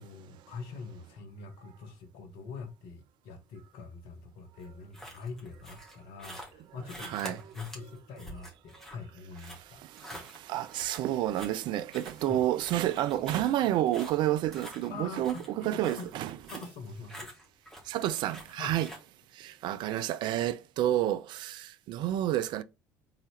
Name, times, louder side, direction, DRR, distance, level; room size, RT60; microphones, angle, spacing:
voice 1, 0.0-9.8 10.1-10.3 12.3-12.4 14.9-16.1 16.5-17.3 18.6-18.7, left 4 dB, 60° left, 1.0 m, -44 dB
sound 1, 4.6-19.0, equal, 5° left, 1.8 m, -48 dB
voice 2, 7.0-7.5 9.5-16.4 17.8-18.9 19.3-22.6, right 13 dB, 50° right, 0.3 m, -30 dB
3.9 x 3.8 x 2.9 m
figure-of-eight pair, 55°, 10 cm